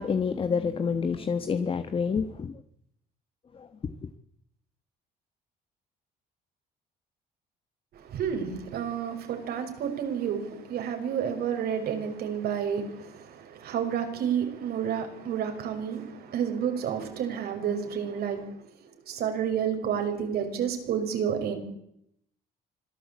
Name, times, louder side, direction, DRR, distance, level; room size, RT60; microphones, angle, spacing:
voice 1, 0.0-2.5 3.8-3.9, left 6 dB, 30° left, 1.3 m, -28 dB
voice 2, 8.1-18.5 19.1-21.6, right 8 dB, 70° right, 5.6 m, -30 dB
26.0 x 16.5 x 8.5 m
cardioid pair, 110°, 17 cm